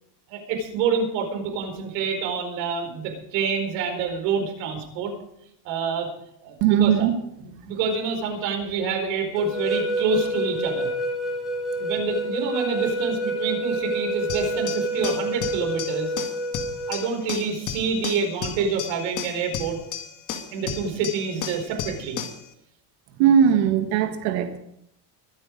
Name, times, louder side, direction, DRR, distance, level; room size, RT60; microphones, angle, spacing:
voice 1, 0.3-5.1 5.6-6.1 6.4-7.1 7.4-10.9 11.8-16.1 16.9-19.8 20.5-22.2, right 5 dB, 85° right, 3 dB, 4.6 m, -27 dB
voice 2, 6.6-7.1 23.2-24.6, right 8 dB, 70° right, 7 dB, 1.7 m, -19 dB
sound 1, 9.4-17.1, right 1 dB, ahead, 2.4 m, -28 dB
sound 2, 14.3-22.5, left 8 dB, 35° left, 1.6 m, -34 dB
23.0 x 8.4 x 5.1 m, 0.77 s
cardioid pair, 160°, 50 cm